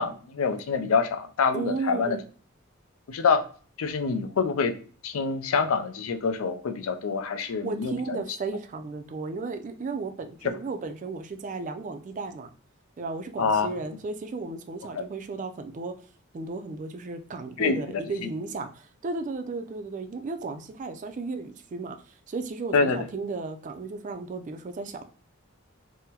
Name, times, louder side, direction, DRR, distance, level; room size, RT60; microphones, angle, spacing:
voice 1, 0.0-2.2 3.1-3.4 3.8-4.8 5.0-8.2 13.4-13.7 14.9-15.0 17.6-17.8 22.7-23.0, left 5 dB, 85° left, 8 dB, 0.4 m, -26 dB
voice 2, 1.5-2.2 7.6-12.5 13.0-15.9 16.3-25.0, right 3 dB, 35° right, 7 dB, 0.3 m, -34 dB
3.6 x 2.1 x 2.8 m, 0.41 s
head